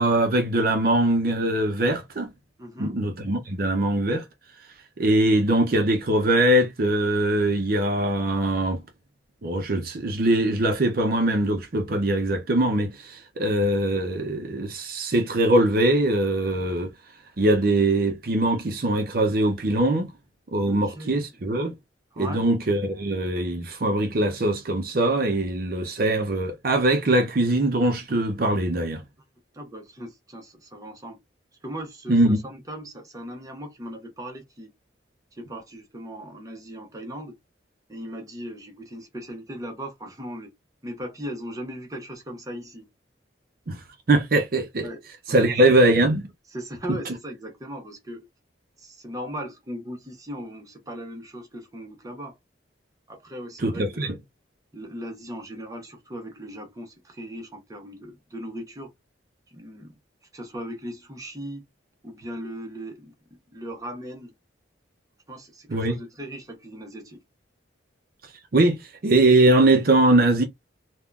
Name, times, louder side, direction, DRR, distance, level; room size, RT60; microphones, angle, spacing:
voice 1, 0.0-2.3 2.8-4.2 5.0-8.8 9.4-16.9 17.4-20.1 20.5-21.7 22.2-29.0 32.1-32.4 43.7-44.9 45.3-46.3 46.9-47.0 53.6-54.1 65.7-66.0 68.5-70.4, right 1 dB, 50° right, 0.5 m, -22 dB
voice 2, 2.6-3.0 20.7-21.2 22.1-22.4 29.5-31.2 31.6-34.7 35.3-37.3 37.9-40.5 40.8-42.9 44.8-45.0 45.4-45.8 46.5-48.3 48.8-52.3 53.1-54.2 54.7-58.9 59.5-59.9 60.3-61.6 62.0-63.1 63.5-64.3 65.3-67.2, equal, 20° right, 0.7 m, -38 dB
3.5 x 2.2 x 2.3 m
head